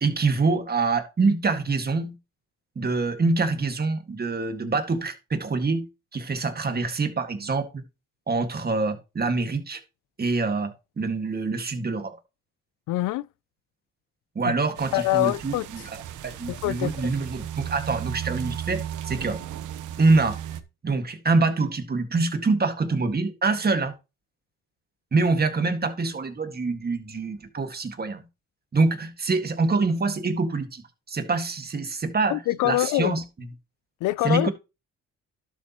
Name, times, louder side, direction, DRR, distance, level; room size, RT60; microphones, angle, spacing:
voice 1, 0.0-2.1 2.8-5.8 6.1-7.8 8.3-9.8 10.2-12.1 14.4-19.4 20.0-20.4 20.8-23.9 25.1-28.2 28.7-30.8 31.1-33.2 34.2-34.5, right 3 dB, 30° right, 1.9 m, -25 dB
voice 2, 12.9-13.3 14.4-14.6 14.9-15.7 16.5-17.1 32.3-33.2 34.0-34.5, left 17 dB, 85° left, 0.4 m, -24 dB
sound 1, 14.8-20.6, right 10 dB, 85° right, 1.0 m, -35 dB
12.0 x 7.1 x 3.0 m
cardioid pair, 90°, 30 cm